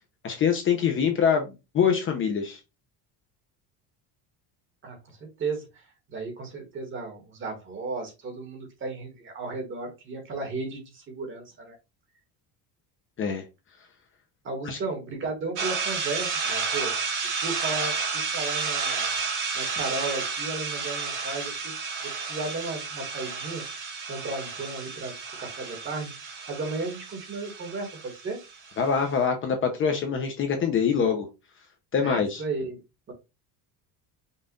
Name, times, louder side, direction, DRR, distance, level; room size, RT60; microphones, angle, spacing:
voice 1, 0.2-1.5 1.7-2.6 13.2-13.4 14.7-14.8 28.8-31.3 31.9-32.4, left 6 dB, 30° left, 4 dB, 0.6 m, -24 dB
voice 2, 4.8-11.8 14.4-19.1 19.5-21.7 22.0-23.6 24.1-26.1 26.5-28.4 32.0-32.8 33.1-33.2, right 3 dB, 30° right, 4 dB, 1.4 m, -35 dB
sound 1, 15.6-28.9, right 5 dB, 45° right, 1.7 m, -31 dB
5.6 x 2.4 x 3.7 m, 0.25 s
cardioid pair, 175°, 41 cm